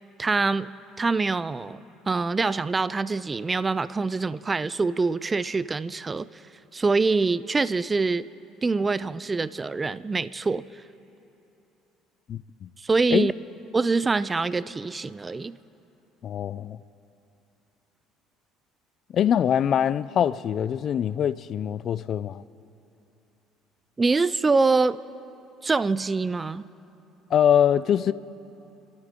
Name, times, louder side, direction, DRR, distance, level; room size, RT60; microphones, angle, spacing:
voice 1, 0.2-0.7 1.0-1.8 2.1-6.3 6.7-8.2 8.6-10.6 12.8-13.3 13.7-15.6 24.0-25.0 25.6-26.7, right 3 dB, 25° right, 0.5 m, -24 dB
voice 2, 12.3-12.7 13.1-13.3 16.2-16.8 19.1-22.4 27.3-28.1, left 9 dB, 55° left, 0.4 m, -23 dB
29.5 x 13.0 x 3.8 m
supercardioid pair, 85°, 0 cm